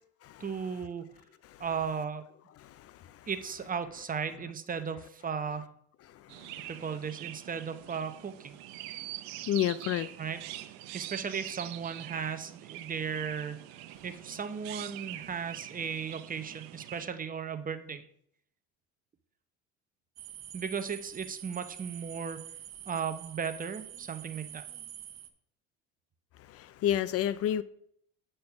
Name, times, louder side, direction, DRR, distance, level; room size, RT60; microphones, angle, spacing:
voice 1, 0.4-1.1 1.6-2.3 3.3-5.7 6.7-8.6 10.2-10.4 10.9-13.6 14.0-18.0 20.5-22.4 22.9-24.6, right 6 dB, 25° right, 0.8 m, -36 dB
Chirp tweet, 6.3-17.1, right 14 dB, 80° right, 0.6 m, -44 dB
voice 2, 9.5-10.1 26.5-27.6, left 11 dB, 50° left, 0.5 m, -29 dB
sound 1, 20.2-25.3, right 11 dB, 55° right, 1.0 m, -46 dB
8.3 x 4.4 x 5.7 m
supercardioid pair, 85°, 32 cm